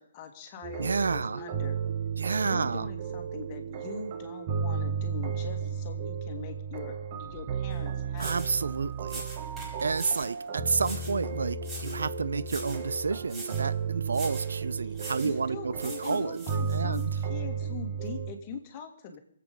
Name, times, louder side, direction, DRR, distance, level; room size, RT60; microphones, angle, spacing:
voice 1, 0.0-1.8 2.4-8.3 14.8-17.0 17.3-19.2, left 6 dB, 35° left, 4 dB, 2.2 m, -42 dB
sound 1, 0.6-18.3, right 6 dB, 35° right, 1.7 m, -34 dB
voice 2, 0.8-1.4 2.2-2.9 8.2-9.2 9.8-17.1, right 4 dB, 75° right, 17 dB, 0.6 m, -30 dB
sound 2, 7.7-7.8 8.1-8.6 9.1-10.4 10.8-11.2 11.6-12.1 12.4-12.9 13.3-13.7 14.1-14.5 14.9-15.4 15.8-17.1, right 2 dB, 15° right, 4.6 m, -42 dB
24.5 x 8.5 x 5.4 m, 0.64 s
hypercardioid pair, 140°, 0 cm